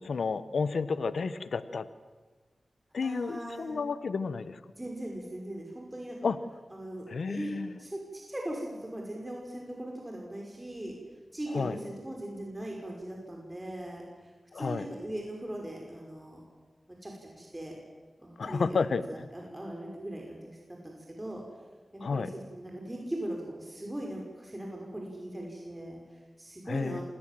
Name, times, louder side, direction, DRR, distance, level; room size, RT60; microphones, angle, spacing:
voice 1, 0.0-1.9 2.9-4.6 6.2-6.4 7.1-7.7 11.5-11.8 14.5-14.9 18.4-19.3 22.0-22.3 26.7-27.0, left 5 dB, 80° left, 14 dB, 1.1 m, -31 dB
voice 2, 3.0-3.8 4.8-6.2 6.7-11.0 11.3-16.4 17.0-17.7 18.2-21.4 22.1-27.0, right 1 dB, 20° right, 0 dB, 5.7 m, -40 dB
26.0 x 18.5 x 7.7 m, 1.3 s
cardioid pair, 45°, 0 cm